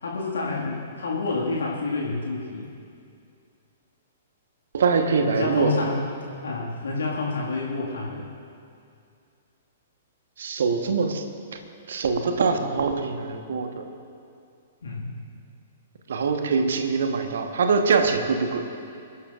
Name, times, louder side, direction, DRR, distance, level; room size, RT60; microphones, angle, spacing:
voice 1, 0.0-2.7 5.2-6.0 6.4-8.3 14.8-15.1, left 3 dB, 65° left, -4 dB, 2.0 m, -28 dB
voice 2, 4.7-5.8 10.4-11.2 11.9-13.9 16.1-18.7, right 5 dB, 60° right, 6 dB, 1.2 m, -23 dB
25.0 x 12.5 x 2.5 m, 2.5 s
figure-of-eight pair, 115°, 0 cm